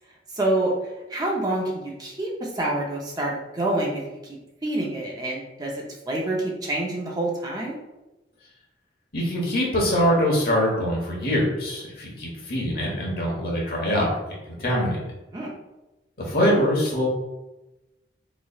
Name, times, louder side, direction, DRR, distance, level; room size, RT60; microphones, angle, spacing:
voice 1, 0.3-0.7 1.1-7.8 15.3-15.5, right 1 dB, 20° right, -2 dB, 0.6 m, -27 dB
voice 2, 9.1-14.1 14.5-15.0 16.2-17.1, equal, 60° left, -2 dB, 1.1 m, -23 dB
4.1 x 3.1 x 2.3 m, 1.0 s
head